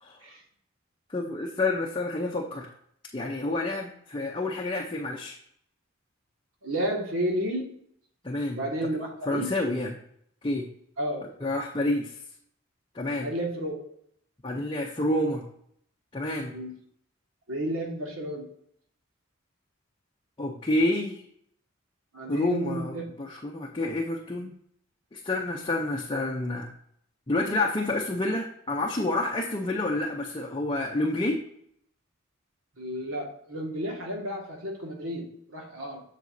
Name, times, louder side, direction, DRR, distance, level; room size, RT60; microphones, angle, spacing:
voice 1, 1.1-2.7 3.1-5.4 8.2-8.6 9.2-10.0 10.4-10.7 11.4-12.2 12.9-13.3 14.4-15.4 16.1-16.5 20.4-21.2 22.3-24.5 25.1-26.7 27.3-31.4, left 2 dB, 25° left, -1 dB, 0.6 m, -29 dB
voice 2, 6.6-7.7 8.5-9.5 11.0-11.3 13.2-13.7 16.5-16.7 17.5-18.5 22.1-23.0 32.8-36.0, equal, 75° right, 0 dB, 1.8 m, -32 dB
7.8 x 6.7 x 2.7 m, 0.69 s
head